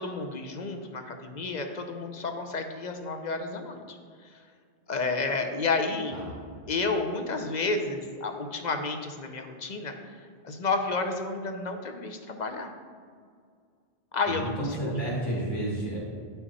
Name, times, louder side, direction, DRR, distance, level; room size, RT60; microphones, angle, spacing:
voice 1, 0.0-4.0 4.9-6.2 6.7-9.9 10.4-12.7 14.1-15.0, left 3 dB, 50° left, 5 dB, 0.8 m, -31 dB
voice 2, 14.3-16.0, right 1 dB, 25° left, -6 dB, 1.8 m, -31 dB
9.7 x 5.8 x 4.1 m, 2.1 s
omnidirectional pair, 1.0 m